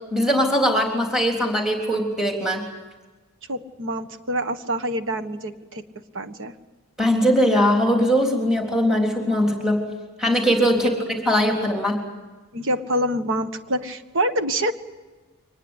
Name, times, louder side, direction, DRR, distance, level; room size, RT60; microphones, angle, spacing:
voice 1, 0.1-2.6 7.0-9.8 10.2-10.9 11.3-12.0, equal, 5° right, 1 dB, 3.5 m, -20 dB
voice 2, 3.5-5.8 6.1-6.5 12.5-14.7, right 1 dB, 60° right, 9 dB, 1.5 m, -26 dB
24.5 x 20.0 x 8.2 m, 1.3 s
head